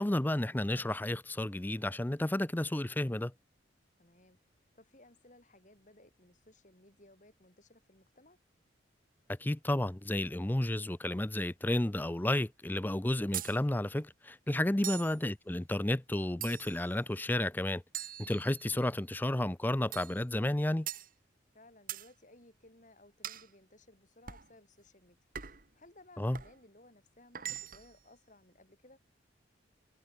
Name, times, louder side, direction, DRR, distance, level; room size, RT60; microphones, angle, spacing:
voice 1, 0.0-3.3 9.3-17.8 18.2-20.9 26.2-26.4, left 1 dB, 10° left, 0.5 m, -32 dB
voice 2, 4.0-4.4 4.7-8.4 21.5-25.2 25.5-29.0, left 1 dB, 40° left, 6.6 m, -60 dB
sound 1, 13.3-13.6 14.8-15.2 16.4-16.9 17.9-18.8 19.9-20.2 20.9-21.1 21.9-22.1 23.2-23.5 24.3-24.5 25.3-25.7 26.3-26.6 27.3-27.9, right 11 dB, 45° right, 2.3 m, -41 dB
head